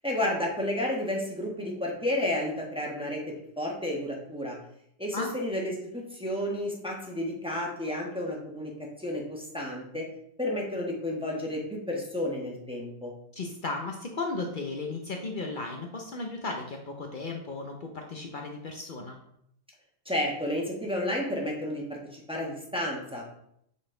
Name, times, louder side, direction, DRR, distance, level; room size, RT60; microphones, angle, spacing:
voice 1, 0.0-4.6 5.0-10.1 10.4-13.1 20.0-23.3, left 1 dB, 5° right, -2 dB, 1.0 m, -31 dB
voice 2, 13.3-19.2, left 3 dB, 85° left, 1 dB, 0.4 m, -35 dB
7.4 x 4.1 x 3.8 m, 0.73 s
omnidirectional pair, 1.9 m